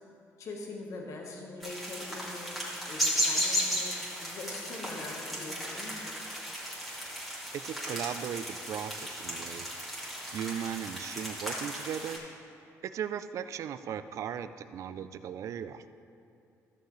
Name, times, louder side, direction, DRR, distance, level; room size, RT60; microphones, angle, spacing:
voice 1, 0.4-3.9 4.2-6.1, left 3 dB, 65° left, 0 dB, 1.3 m, -43 dB
sound 1, 1.6-12.2, equal, ahead, 2.3 m, -35 dB
voice 2, 7.5-9.7 10.3-12.2 12.8-15.8, right 9 dB, 65° right, 12 dB, 0.4 m, -37 dB
13.5 x 6.5 x 3.2 m, 2.5 s
cardioid pair, 105°, 6 cm